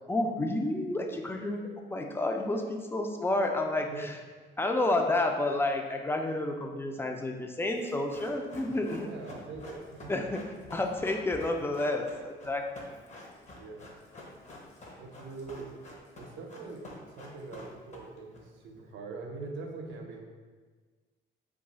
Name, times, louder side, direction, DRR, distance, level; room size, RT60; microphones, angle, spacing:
voice 1, 0.1-1.6 1.9-4.1 4.6-9.1 10.1-10.4 10.7-12.7, left 2 dB, 10° left, 3 dB, 0.3 m, -30 dB
Run, 7.8-18.4 18.7-18.8, left 2 dB, 35° left, 0.7 m, -48 dB
voice 2, 9.0-10.1 13.5-13.9 15.0-15.7 16.1-16.9 17.2-20.2, right 3 dB, 75° right, 1 dB, 0.5 m, -43 dB
2.3 x 2.3 x 3.9 m, 1.4 s
cardioid pair, 90°, 20 cm